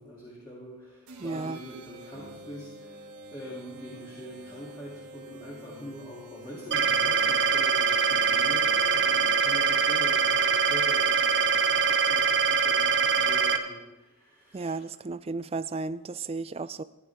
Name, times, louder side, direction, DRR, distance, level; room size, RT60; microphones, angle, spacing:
voice 1, 0.0-14.8, equal, 20° left, -7 dB, 2.7 m, -44 dB
sound 1, 1.1-12.5, right 2 dB, 90° right, 2.2 m, -49 dB
voice 2, 1.2-1.6 14.5-16.8, right 3 dB, 25° right, 14 dB, 0.3 m, -33 dB
sound 2, 2.1-9.4, left 4 dB, 60° left, 4.9 m, -50 dB
sound 3, 6.7-13.6, right 5 dB, 50° right, 0.9 m, -23 dB
15.5 x 11.0 x 3.5 m, 1.1 s
head